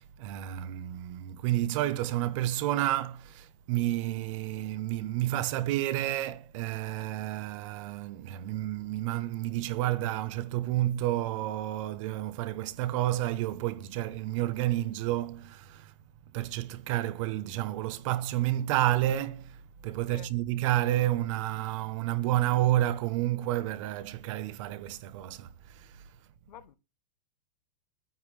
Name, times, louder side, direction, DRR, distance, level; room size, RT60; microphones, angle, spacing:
voice 1, 0.0-15.9 16.3-26.0, right 14 dB, 50° right, 0.8 m, -30 dB
voice 2, 20.1-20.3 26.5-26.7, left 10 dB, 80° left, 1.1 m, -48 dB
22.5 x 9.2 x 3.2 m
supercardioid pair, 155°, 21 cm